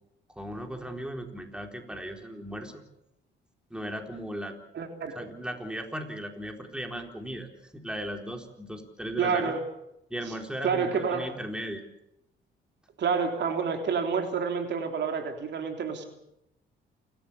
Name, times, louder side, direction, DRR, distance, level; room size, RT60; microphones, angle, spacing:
voice 1, 0.4-2.8 3.7-4.5 5.2-9.5 10.1-11.8, equal, 5° right, 4 dB, 4.0 m, -37 dB
voice 2, 4.7-5.2 9.2-9.7 10.6-11.3 13.0-16.1, right 5 dB, 65° right, 5 dB, 3.5 m, -28 dB
28.5 x 13.5 x 8.4 m, 0.82 s
cardioid pair, 90°, 20 cm